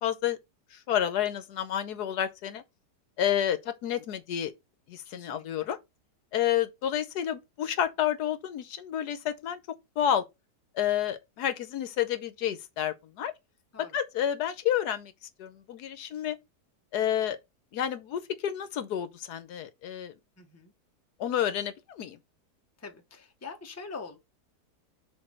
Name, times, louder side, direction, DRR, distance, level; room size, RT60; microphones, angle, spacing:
voice 1, 0.0-0.4 0.7-2.6 3.2-4.5 4.9-5.8 6.3-9.6 10.0-10.2 10.7-13.3 13.9-15.1 15.4-16.4 16.9-17.4 17.7-20.1 21.2-22.2, left 10 dB, 75° left, 1.2 m, -30 dB
voice 2, 5.1-5.7 13.7-14.0 20.4-20.7 22.8-24.2, left 4 dB, 10° left, 0.8 m, -44 dB
6.7 x 3.9 x 4.3 m
omnidirectional pair, 1.8 m